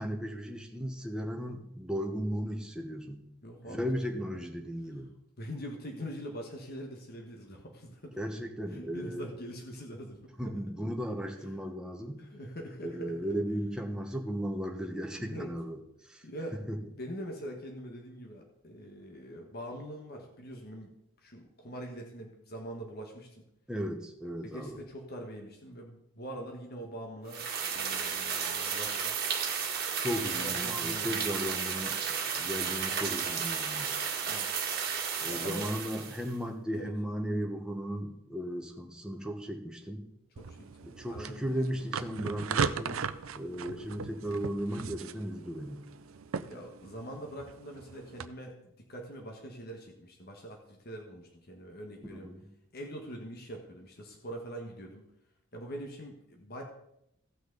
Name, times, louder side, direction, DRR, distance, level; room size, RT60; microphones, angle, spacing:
voice 1, 0.0-3.2 3.7-5.1 8.2-9.3 10.4-12.2 12.8-16.2 16.7-16.8 23.7-24.8 30.0-33.9 35.2-40.0 40.9-43.0 43.4-45.8 52.1-52.5, equal, 5° right, 2 dB, 1.1 m, -36 dB
voice 2, 3.4-3.8 4.1-4.5 5.4-8.2 8.7-10.5 12.2-13.3 15.2-15.5 16.2-20.9 21.2-23.3 24.4-29.1 30.4-31.5 34.2-34.5 35.3-35.7 36.7-36.9 40.4-41.9 43.6-43.9 46.5-52.3 52.7-55.0 55.5-56.6, equal, 50° left, 2 dB, 1.5 m, -43 dB
sound 1, 27.3-36.3, right 6 dB, 45° right, 1.6 m, -33 dB
sound 2, 40.4-48.3, right 5 dB, 75° right, 0.5 m, -38 dB
16.5 x 6.1 x 3.9 m, 0.78 s
head